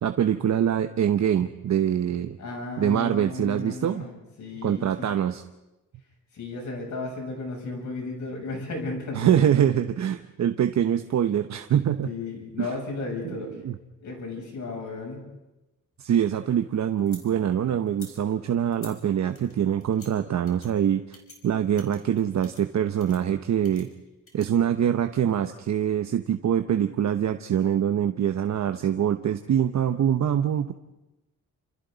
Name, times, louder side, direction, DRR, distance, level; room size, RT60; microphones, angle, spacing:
voice 1, 0.0-2.4 2.8-4.1 4.6-5.4 9.1-12.1 12.6-12.7 13.6-13.7 16.0-21.2 21.4-23.9 24.3-30.7, right 9 dB, 55° right, 8 dB, 0.9 m, -24 dB
voice 2, 2.4-4.1 4.4-5.1 6.3-9.4 12.0-13.6 14.0-15.2, left 3 dB, 60° left, 0 dB, 7.6 m, -34 dB
sound 1, 15.9-17.3 17.8-18.1 18.7-19.0 19.3-20.1 20.5-20.7 21.1-21.4 21.8-22.7 23.0-23.2 23.6-24.5, left 3 dB, 40° left, 5.0 m, -48 dB
29.0 x 26.5 x 4.0 m, 1.0 s
wide cardioid pair, 135°, 33 cm